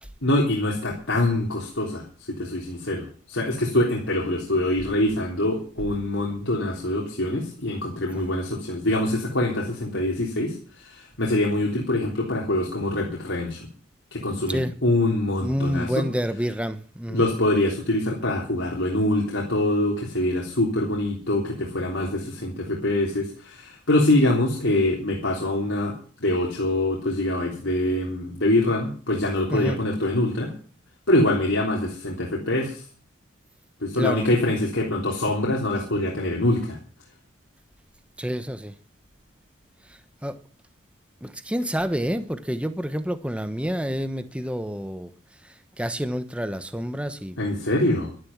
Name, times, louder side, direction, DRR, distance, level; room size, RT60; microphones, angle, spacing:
voice 1, 0.2-2.0 2.3-13.7 14.1-16.0 17.1-25.9 26.2-30.5 31.1-32.8 33.8-36.8 47.4-48.1, left 1 dB, 75° left, 3.6 m, -24 dB
voice 2, 8.1-8.4 14.5-14.7 15.4-17.3 29.5-29.8 34.0-34.3 38.2-38.7 39.9-40.3 41.2-45.1 45.4-47.4, equal, 5° right, 1.0 m, -28 dB
12.5 x 11.0 x 7.3 m
head